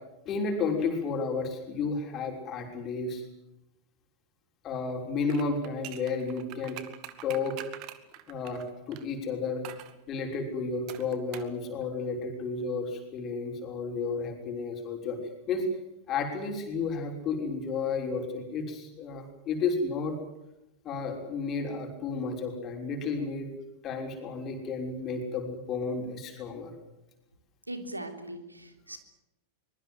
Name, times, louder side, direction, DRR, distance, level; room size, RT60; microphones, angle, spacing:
voice 1, 0.3-3.2 4.6-6.8 7.2-7.6 8.3-9.7 10.1-15.2 15.5-15.7 16.1-20.2 20.8-23.5 23.8-26.7, left 4 dB, 30° left, 3 dB, 5.9 m, -32 dB
sound 1, 5.3-9.1 9.6-9.9 10.9-11.6 11.8-11.9, right 13 dB, 40° right, 2.2 m, -44 dB
voice 2, 27.7-29.0, right 1 dB, 85° right, 7 dB, 3.4 m, -39 dB
24.0 x 22.0 x 7.9 m, 0.93 s
figure-of-eight pair, 90°, 0 cm